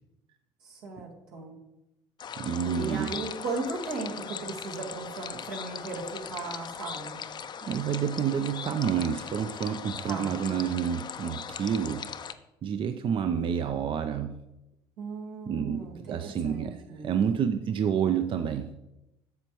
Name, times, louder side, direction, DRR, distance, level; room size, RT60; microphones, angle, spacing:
voice 1, 0.6-1.5 2.6-7.2 10.0-10.4 15.0-17.1, right 3 dB, 80° right, -1 dB, 1.8 m, -37 dB
sound 1, 2.2-12.3, left 7 dB, 35° left, 0.5 m, -39 dB
voice 2, 2.4-3.1 7.6-12.1 12.6-14.4 15.5-18.7, right 8 dB, 45° right, 8 dB, 0.5 m, -29 dB
7.6 x 6.9 x 3.0 m, 0.91 s
hypercardioid pair, 65°, 12 cm